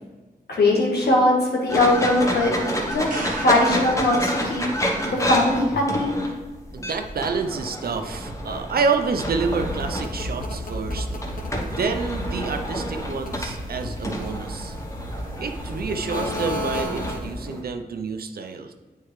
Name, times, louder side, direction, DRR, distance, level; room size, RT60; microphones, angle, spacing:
voice 1, 0.5-2.5 2.9-3.1 3.4-4.6 5.1-6.1, left 2 dB, 80° left, -2 dB, 1.5 m, -20 dB
sound 1, 1.7-17.6, equal, 20° left, 1.1 m, -30 dB
sound 2, 2.9-4.9 8.6-8.7, right 2 dB, 55° right, 1.1 m, -38 dB
voice 2, 6.7-11.1 11.6-14.8 15.4-18.7, right 4 dB, 70° right, 6 dB, 0.6 m, -28 dB
sound 3, 9.1-17.5, left 1 dB, 60° left, 1.0 m, -33 dB
8.3 x 4.5 x 3.2 m, 1.2 s
cardioid pair, 75°, 16 cm